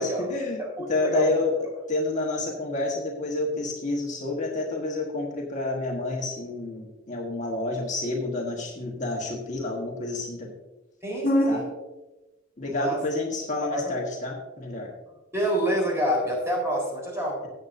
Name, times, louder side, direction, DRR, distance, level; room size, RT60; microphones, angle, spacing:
voice 1, 0.0-0.6 0.9-1.5 1.9-10.5 11.2-11.6 12.6-14.9, left 2 dB, 40° left, -1 dB, 1.4 m, -28 dB
voice 2, 0.6-1.4 11.0-11.7 12.6-13.0 13.6-13.9 15.3-17.4, right 1 dB, 15° right, -2 dB, 4.1 m, -27 dB
17.0 x 8.1 x 2.6 m, 1.1 s
head